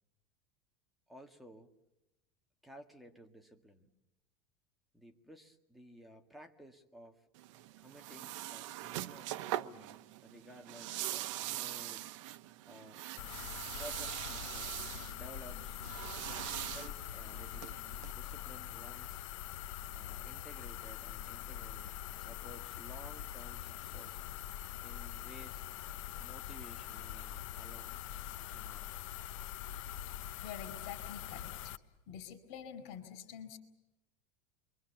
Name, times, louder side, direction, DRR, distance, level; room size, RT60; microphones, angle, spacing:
voice 1, 1.1-1.7 2.6-3.9 4.9-7.3 7.8-12.1 12.7-13.1 13.7-15.8 16.6-19.2 19.9-24.3 24.8-25.6 26.2-28.0 28.5-29.0, right 1 dB, ahead, 3 dB, 1.9 m, -55 dB
sound 1, 7.3-18.1, right 14 dB, 75° right, 1.0 m, -42 dB
sound 2, 13.2-31.8, left 11 dB, 80° left, 1.1 m, -44 dB
voice 2, 30.4-31.7 32.1-33.6, left 8 dB, 60° left, 13 dB, 4.7 m, -47 dB
29.5 x 24.0 x 7.0 m, 0.94 s
supercardioid pair, 160°, 16 cm